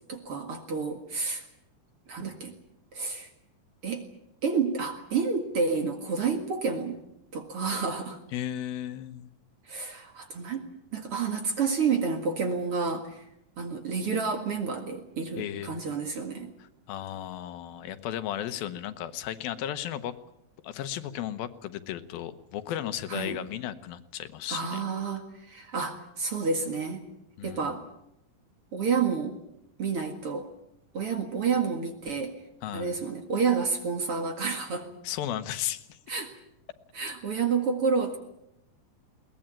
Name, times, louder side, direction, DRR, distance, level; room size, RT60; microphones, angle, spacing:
voice 1, 0.1-1.5 2.1-2.5 2.9-3.3 3.8-4.1 4.4-7.0 7.3-8.2 9.7-10.6 10.9-13.2 13.6-16.5 23.1-23.4 24.5-27.0 27.4-27.8 28.7-29.4 29.8-30.5 30.9-32.3 32.7-34.9 36.1-36.4 36.9-38.2, right 5 dB, 45° right, 5 dB, 2.4 m, -29 dB
voice 2, 8.3-9.3 15.4-15.7 16.9-20.1 20.6-24.8 27.4-27.7 32.6-32.9 35.0-36.0, left 11 dB, 80° left, 11 dB, 2.8 m, -35 dB
21.5 x 19.0 x 8.9 m, 0.81 s
omnidirectional pair, 4.2 m